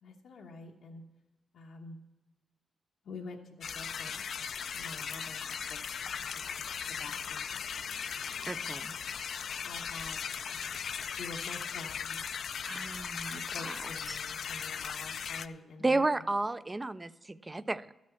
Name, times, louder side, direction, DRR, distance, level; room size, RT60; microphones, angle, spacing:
voice 1, 0.0-1.0 1.5-2.0 3.0-4.5 4.7-5.8 6.3-7.6 8.6-8.9 9.6-12.9 13.3-16.1, left 3 dB, 85° left, -2 dB, 1.1 m, -48 dB
sound 1, 3.6-15.5, left 7 dB, 65° left, 0.4 m, -38 dB
voice 2, 8.5-9.0 12.6-14.2 15.8-17.9, right 2 dB, 20° right, 15 dB, 0.4 m, -33 dB
13.0 x 6.3 x 7.0 m, 1.1 s
wide cardioid pair, 130°, 0 cm